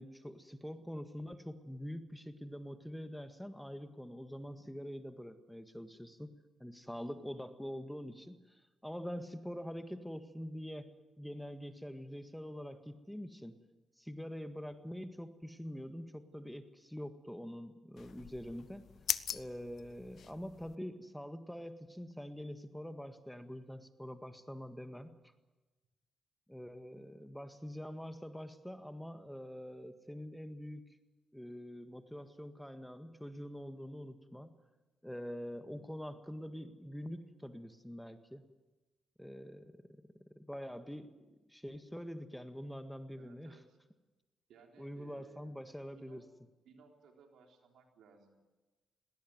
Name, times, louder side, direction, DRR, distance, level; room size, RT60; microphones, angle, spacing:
voice 1, 0.0-6.3 6.6-10.9 11.2-13.6 14.0-18.8 19.3-25.3 26.5-30.9 31.3-34.6 35.0-38.4 39.2-39.8 40.4-41.1 41.5-43.6 44.8-46.2, equal, 5° left, 8 dB, 1.8 m, -45 dB
sound 1, 18.0-20.8, left 8 dB, 65° left, 0.8 m, -41 dB
voice 2, 35.5-35.8 43.1-43.8 44.5-45.5 46.0-46.3 46.6-48.4, right 5 dB, 75° right, 2 dB, 3.9 m, -61 dB
19.5 x 18.5 x 9.5 m, 1.2 s
supercardioid pair, 55°, 0 cm